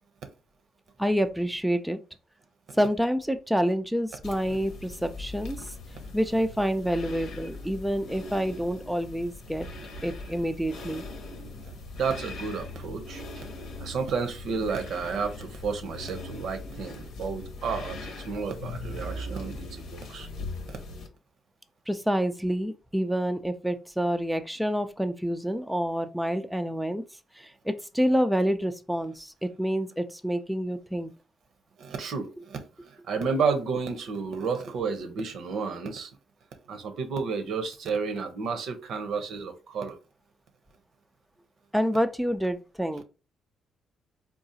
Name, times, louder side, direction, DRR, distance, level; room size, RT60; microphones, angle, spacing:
voice 1, 1.0-2.0 2.8-5.7 6.1-9.7 10.0-11.0 21.9-27.0 27.4-31.1 41.7-43.0, equal, 5° right, 0.3 m, -28 dB
sound 1, 4.2-21.1, left 2 dB, 75° left, 0.8 m, -40 dB
voice 2, 11.6-13.4 13.8-20.3 20.7-20.8 31.8-36.1 36.7-40.0, right 5 dB, 70° right, 0.7 m, -32 dB
3.8 x 2.3 x 2.7 m
cardioid pair, 90°, 0 cm